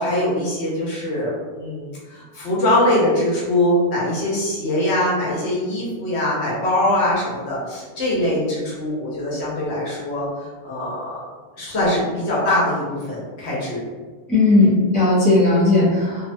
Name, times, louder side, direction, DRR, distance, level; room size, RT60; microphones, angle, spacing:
voice 1, 0.0-11.2 11.6-13.8, left 1 dB, 70° left, -6 dB, 1.1 m, -22 dB
voice 2, 14.3-16.3, left 2 dB, 5° right, -10 dB, 0.8 m, -16 dB
2.7 x 2.1 x 2.5 m, 1.4 s
omnidirectional pair, 1.2 m